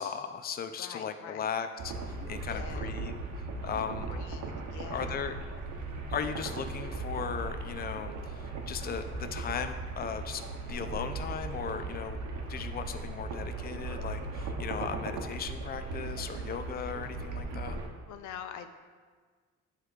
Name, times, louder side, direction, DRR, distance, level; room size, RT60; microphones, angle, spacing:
voice 1, 0.0-3.1 3.6-4.1 4.9-5.4 6.1-10.4 10.7-12.2 12.5-17.8, left 7 dB, 30° left, 8 dB, 0.5 m, -37 dB
voice 2, 0.8-1.5 2.5-2.9 3.8-5.3 18.1-18.7, left 8 dB, 80° left, 8 dB, 0.5 m, -45 dB
sound 1, 1.8-17.9, right 3 dB, 80° right, 1.0 m, -38 dB
9.0 x 3.3 x 4.8 m, 1.5 s
cardioid pair, 90°, 30 cm